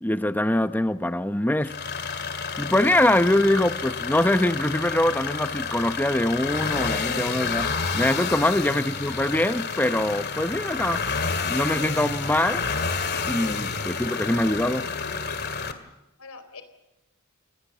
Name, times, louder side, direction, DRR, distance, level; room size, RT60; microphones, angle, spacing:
voice 1, 0.0-1.7 2.6-11.0 11.4-12.6 13.3-14.9, left 1 dB, 10° left, 0.8 m, -23 dB
sound 1, 1.6-15.7, left 5 dB, 50° left, 2.1 m, -29 dB
voice 2, 8.3-8.8 13.5-13.9 16.2-16.6, left 4 dB, 90° left, 3.9 m, -45 dB
29.0 x 20.5 x 7.4 m
head